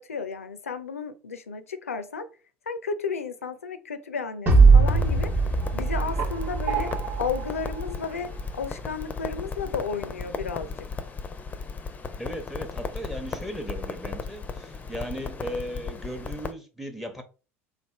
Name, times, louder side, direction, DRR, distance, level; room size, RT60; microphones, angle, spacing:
voice 1, 0.0-2.3 2.7-5.3 5.7-6.9 7.2-10.7, left 5 dB, 85° left, 0.5 m, -33 dB
sound 1, 4.5-7.7, right 4 dB, 30° right, 1.0 m, -20 dB
Crackle, 4.9-16.5, left 5 dB, 20° left, 0.6 m, -36 dB
sound 2, 5.6-8.9, right 8 dB, 60° right, 0.8 m, -36 dB
voice 2, 12.2-17.2, equal, ahead, 0.8 m, -36 dB
3.3 x 2.4 x 4.3 m
hypercardioid pair, 75°, 7 cm